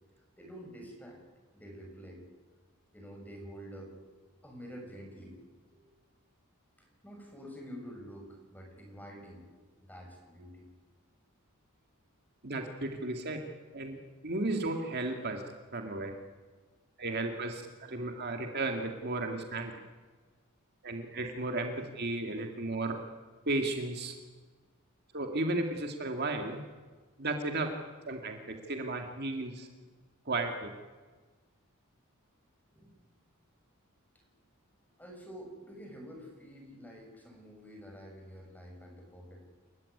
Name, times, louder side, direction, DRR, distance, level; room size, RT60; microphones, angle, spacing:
voice 1, 0.4-1.2 1.5-2.2 2.9-3.9 4.4-5.8 6.8-10.7 32.7-32.9 34.1-34.2 35.0-39.5, equal, 10° left, 1 dB, 6.8 m, -48 dB
voice 2, 12.4-13.4 13.7-15.4 15.7-16.1 17.0-19.7 20.8-23.0 23.5-24.1 25.1-26.6 27.2-27.7 28.1-29.7 30.3-30.7, right 2 dB, 50° right, 4 dB, 2.2 m, -34 dB
29.0 x 15.5 x 9.9 m, 1.4 s
head